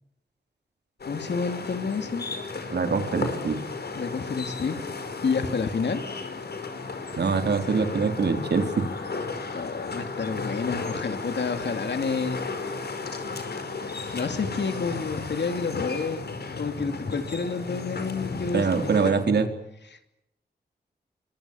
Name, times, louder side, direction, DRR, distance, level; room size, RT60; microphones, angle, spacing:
sound 1, 1.0-19.1, left 4 dB, 70° left, 5.1 m, -34 dB
voice 1, 1.1-2.3 3.9-4.8 5.2-6.0 9.5-12.8 14.1-16.2 16.6-19.1 19.9-20.1, left 5 dB, 85° left, 7 dB, 3.1 m, -29 dB
voice 2, 2.7-3.6 7.2-8.9 18.5-19.5, right 5 dB, 75° right, 6 dB, 3.8 m, -24 dB
28.5 x 25.5 x 7.3 m, 0.84 s
wide cardioid pair, 115°, 17 cm